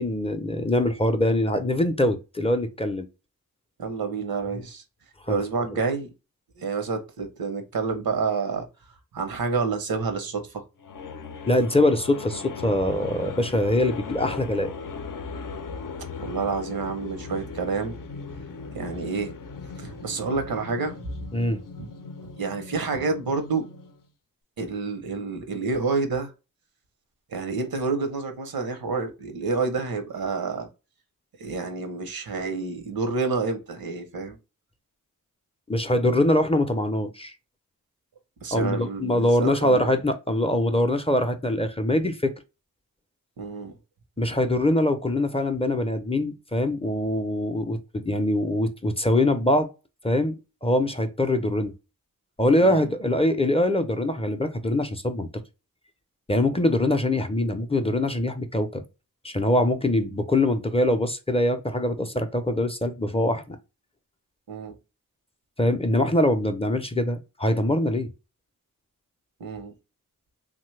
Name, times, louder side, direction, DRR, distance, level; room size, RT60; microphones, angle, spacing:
voice 1, 0.0-3.1 4.5-4.6 5.3-5.4 11.5-14.7 21.3-21.6 35.7-37.3 38.5-42.3 44.2-49.7 50.0-50.4 50.6-51.7 52.4-55.3 56.3-58.8 59.2-63.6 65.6-68.1, left 1 dB, 15° left, 0.5 m, -23 dB
voice 2, 3.8-4.8 5.3-6.1 6.6-8.7 9.1-10.6 16.2-17.9 18.7-19.3 19.8-21.3 21.8-21.9 22.2-23.7 24.6-26.3 27.3-30.7 31.4-34.4 38.4-40.0 43.4-43.7 52.6-52.9 64.5-64.7 69.4-69.7, right 4 dB, 90° right, 0.7 m, -29 dB
sound 1, 10.8-24.1, left 4 dB, 70° left, 0.6 m, -38 dB
3.1 x 2.1 x 3.1 m
wide cardioid pair, 50°, 35 cm